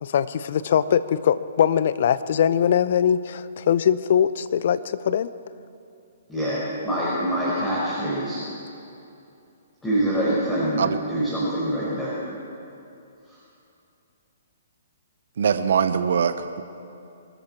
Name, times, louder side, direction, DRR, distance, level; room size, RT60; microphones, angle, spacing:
voice 1, 0.0-5.3, left 9 dB, 55° left, 15 dB, 0.6 m, -21 dB
voice 2, 6.3-8.4 9.8-10.8 11.1-12.1, right 1 dB, 10° left, -9 dB, 5.0 m, -25 dB
voice 3, 15.4-16.6, right 7 dB, 60° right, 10 dB, 0.9 m, -22 dB
24.0 x 13.0 x 4.4 m, 2.7 s
figure-of-eight pair, 125°, 0 cm